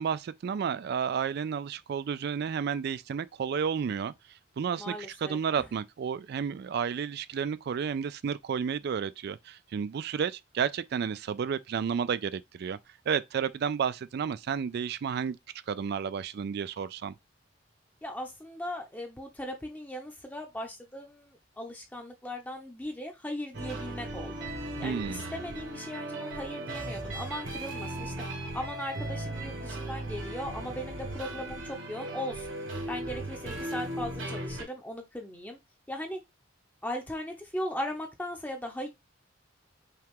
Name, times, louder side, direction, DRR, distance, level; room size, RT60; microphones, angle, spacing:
voice 1, 0.0-4.1 4.6-12.8 13.1-15.4 15.7-17.1 24.8-25.2, right 7 dB, 55° right, 0.3 m, -31 dB
voice 2, 4.8-5.4 18.0-24.3 24.8-28.1 28.5-32.6 32.9-35.6 35.9-36.2 36.8-38.9, left 1 dB, 10° left, 0.7 m, -38 dB
sound 1, 23.5-34.6, right 1 dB, 80° right, 1.7 m, -37 dB
5.6 x 2.4 x 3.6 m
head